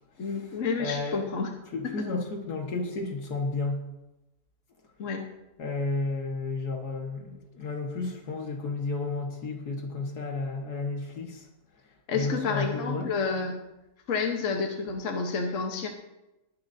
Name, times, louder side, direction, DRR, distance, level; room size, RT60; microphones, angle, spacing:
voice 1, 0.2-1.5 1.8-2.1 5.0-5.2 12.1-13.5 14.1-15.9, left 5 dB, 55° left, 2 dB, 1.4 m, -30 dB
voice 2, 0.8-1.3 1.7-3.8 5.6-11.5 12.1-13.1, left 3 dB, 75° left, 2 dB, 2.1 m, -32 dB
19.5 x 11.5 x 2.7 m, 0.98 s
omnidirectional pair, 1.7 m